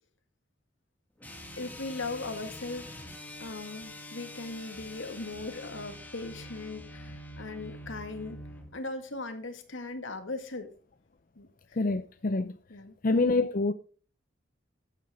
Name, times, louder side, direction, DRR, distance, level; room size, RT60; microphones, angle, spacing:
sound 1, 1.2-8.7, left 1 dB, 10° left, 1.8 m, -45 dB
voice 1, 1.6-2.9 3.4-8.4 8.7-10.7 11.4-11.8 12.7-12.9, left 3 dB, 75° left, 1.9 m, -39 dB
voice 2, 11.7-12.6 13.0-13.7, left 3 dB, 45° left, 0.6 m, -26 dB
12.0 x 8.7 x 3.6 m
head